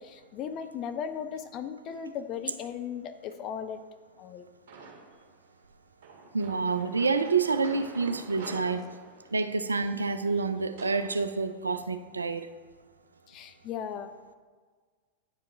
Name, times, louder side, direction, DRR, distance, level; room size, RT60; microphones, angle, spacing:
voice 1, 0.0-3.8 4.2-4.5 13.3-14.1, left 8 dB, 35° left, 9 dB, 0.5 m, -37 dB
sound 1, 4.7-5.3 6.0-11.1, right 4 dB, 50° right, 2.0 m, -47 dB
voice 2, 6.3-8.8 9.3-12.5, right 4 dB, 75° right, 10 dB, 0.4 m, -28 dB
10.0 x 4.8 x 3.2 m, 1.5 s
figure-of-eight pair, 90°, 0 cm